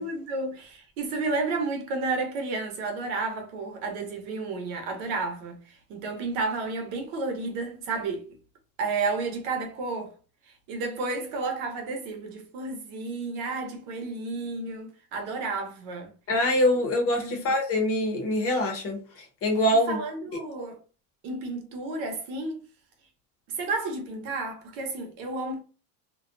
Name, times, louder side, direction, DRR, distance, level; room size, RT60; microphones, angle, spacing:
voice 1, 0.0-8.2 8.8-10.1 10.7-16.1 17.2-17.4 19.9-20.8 21.2-22.6 23.5-25.6, right 3 dB, 65° right, 0.9 m, -31 dB
voice 2, 16.3-20.0, left 1 dB, 35° left, 0.7 m, -24 dB
2.4 x 2.2 x 2.5 m
cardioid pair, 145°, 43 cm